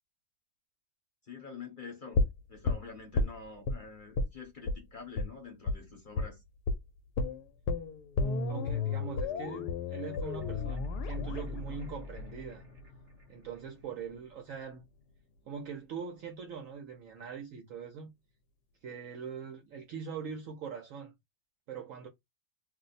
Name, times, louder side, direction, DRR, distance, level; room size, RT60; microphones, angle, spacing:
voice 1, 1.3-2.2 2.5-6.4, left 4 dB, 40° left, 0.8 m, -46 dB
sound 1, 2.1-3.8 4.2-4.4 4.7-4.8 5.2-5.3 5.7-5.8 6.2-6.4 6.7-6.8 7.2-13.2 13.5-13.6, left 3 dB, 85° left, 1.2 m, -33 dB
voice 2, 8.5-12.6 13.3-14.8 15.5-18.1 18.8-21.1 21.7-22.1, right 6 dB, 70° right, 0.8 m, -42 dB
sound 2, 10.0-12.9 13.2-13.3, left 3 dB, 40° right, 0.8 m, -41 dB
2.7 x 2.0 x 4.0 m
omnidirectional pair, 1.7 m